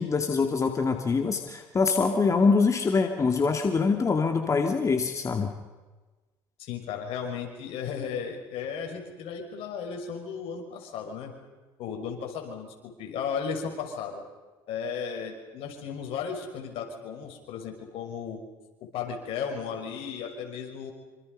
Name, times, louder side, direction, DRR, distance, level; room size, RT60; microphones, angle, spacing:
voice 1, 0.0-5.5, left 4 dB, 30° left, 4 dB, 2.4 m, -24 dB
voice 2, 6.6-11.3 11.8-14.2 14.7-18.4 18.9-20.9, left 6 dB, 70° left, 3 dB, 6.1 m, -35 dB
27.0 x 26.5 x 5.6 m, 1.2 s
supercardioid pair, 85°, 10 cm